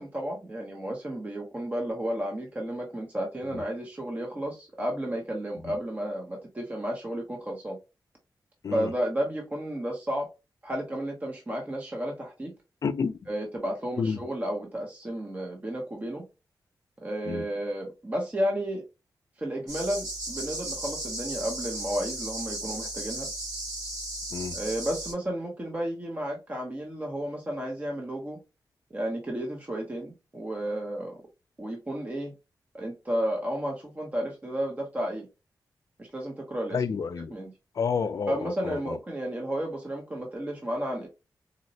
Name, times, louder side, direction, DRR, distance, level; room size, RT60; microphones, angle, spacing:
voice 1, 0.0-7.8 8.7-10.3 10.6-12.5 13.3-16.2 17.0-18.8 19.4-23.3 24.5-28.4 28.9-31.1 31.6-32.3 32.7-35.3 36.0-36.8 37.3-37.5 38.3-41.1, right 1 dB, 20° right, 0.6 m, -32 dB
voice 2, 12.8-13.1 14.0-14.2 17.3-17.4 24.3-24.6 36.7-37.3 37.8-39.0, left 5 dB, 50° left, 0.3 m, -30 dB
sound 1, 19.7-25.1, right 2 dB, 60° right, 1.8 m, -35 dB
3.9 x 2.1 x 2.6 m
wide cardioid pair, 170°, 7 cm